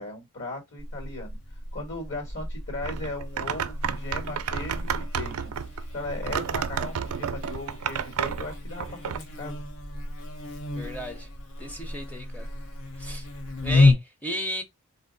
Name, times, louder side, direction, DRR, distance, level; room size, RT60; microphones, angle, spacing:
voice 1, 0.0-1.4 1.7-5.5 5.9-9.6, left 2 dB, 55° left, 1.6 m, -37 dB
Buzz, 0.8-13.9, left 2 dB, 70° left, 1.1 m, -30 dB
sound 1, 2.8-9.2, right 7 dB, 70° right, 0.4 m, -31 dB
voice 2, 10.7-11.3 11.6-12.5 13.0-13.3 13.6-14.6, equal, 5° left, 0.7 m, -34 dB
4.0 x 2.7 x 3.9 m
head